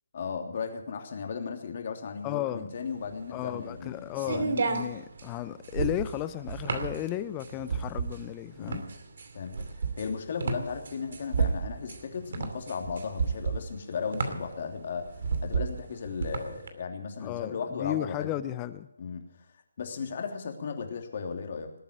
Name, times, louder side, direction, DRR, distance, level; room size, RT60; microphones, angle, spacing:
voice 1, 0.1-4.5 8.6-8.9 9.3-9.7 10.0-15.1 15.4-18.3 19.0-19.2 19.8-21.7, left 5 dB, 45° left, 4 dB, 3.0 m, -36 dB
voice 2, 2.2-2.7 3.3-8.8 17.2-18.9, left 14 dB, 20° left, 14 dB, 0.7 m, -34 dB
sound 1, 2.8-16.7, right 5 dB, 55° right, 2.5 m, -32 dB
20.0 x 9.2 x 7.5 m, 0.86 s
figure-of-eight pair, 155°, 0 cm